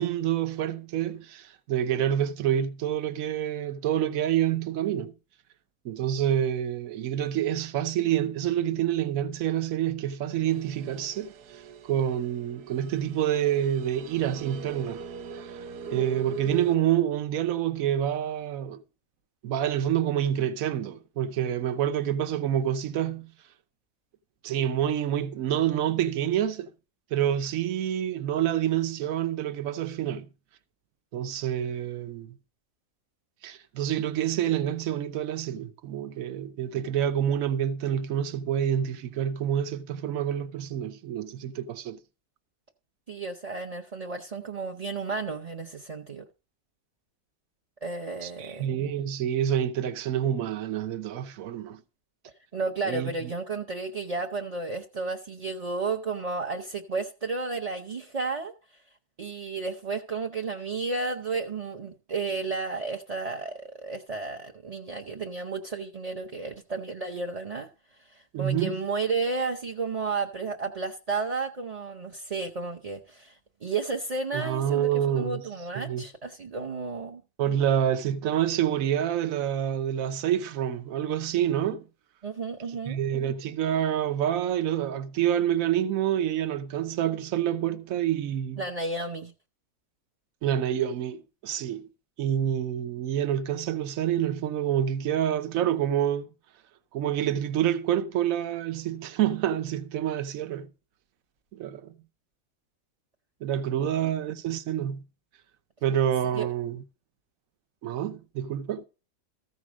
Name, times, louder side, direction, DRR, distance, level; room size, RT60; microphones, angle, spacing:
voice 1, 0.0-5.1 5.8-15.0 15.4-15.6 15.9-18.8 19.4-23.3 24.4-26.7 27.1-30.3 31.1-32.4 33.4-42.0 48.2-51.8 52.8-53.1 68.3-68.8 74.3-75.4 75.7-76.0 77.4-81.9 82.9-88.6 90.4-91.9 92.2-96.3 96.9-100.7 101.5-101.9 103.4-105.0 105.8-106.8 107.8-108.9, right 10 dB, 65° right, 1.2 m, -27 dB
sound 1, 10.5-16.8, right 6 dB, 85° right, 1.2 m, -40 dB
voice 2, 43.1-46.2 47.8-48.7 52.5-58.5 59.2-67.7 68.0-77.2 82.2-83.0 88.6-89.3 103.8-103.9 106.3-106.5, right 4 dB, 35° right, 0.7 m, -32 dB
14.5 x 5.1 x 6.2 m
omnidirectional pair, 1.7 m